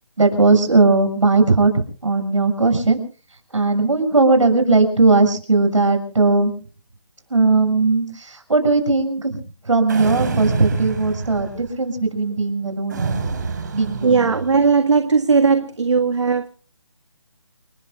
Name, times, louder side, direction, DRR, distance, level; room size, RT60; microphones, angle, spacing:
voice 1, 0.2-3.0 3.5-6.5 7.3-13.2 13.7-14.2, right 3 dB, 85° right, 6.9 m, -18 dB
sound 1, 9.9-11.8 12.9-14.7, right 4 dB, 40° right, 3.8 m, -27 dB
voice 2, 14.0-16.5, right 5 dB, 70° right, 1.7 m, -17 dB
29.5 x 19.5 x 2.4 m
hypercardioid pair, 170°, 16 cm